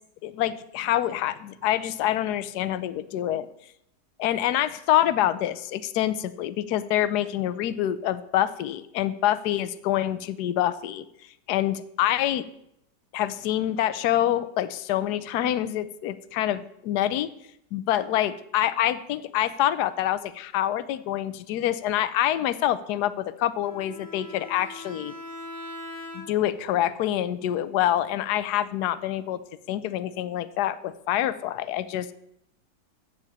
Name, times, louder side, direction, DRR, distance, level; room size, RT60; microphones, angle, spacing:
voice 1, 0.2-3.5 4.2-11.0 11.5-12.4 13.1-17.3 17.7-25.1 26.1-29.4 29.7-32.1, left 12 dB, 70° left, 14 dB, 1.2 m, -26 dB
Bowed string instrument, 23.6-26.6, left 1 dB, 10° left, 1.7 m, -41 dB
14.5 x 4.9 x 8.6 m, 0.76 s
omnidirectional pair, 1.9 m